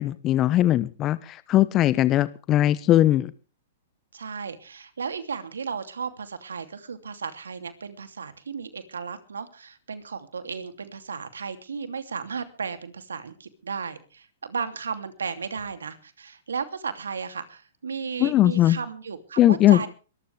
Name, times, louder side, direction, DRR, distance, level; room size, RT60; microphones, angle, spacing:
voice 1, 0.0-3.3 18.2-18.8 19.4-19.9, left 13 dB, 30° left, 1.0 m, -20 dB
voice 2, 4.1-19.9, right 6 dB, 90° right, 2.8 m, -34 dB
22.5 x 14.0 x 3.4 m
hypercardioid pair, 125°, 0 cm